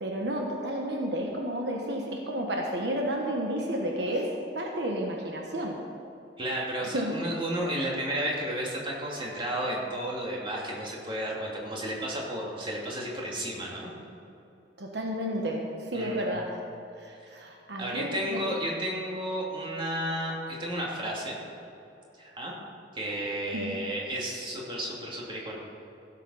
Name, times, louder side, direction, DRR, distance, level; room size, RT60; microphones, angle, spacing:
voice 1, 0.0-5.8 6.9-7.1 14.8-16.6 17.0-18.4 23.5-23.7, equal, 70° right, 0 dB, 1.3 m, -31 dB
voice 2, 6.4-13.9 15.9-16.6 17.8-21.4 22.2-22.5 22.9-25.6, right 1 dB, 30° right, -3 dB, 2.5 m, -32 dB
16.0 x 7.3 x 5.6 m, 2.8 s
head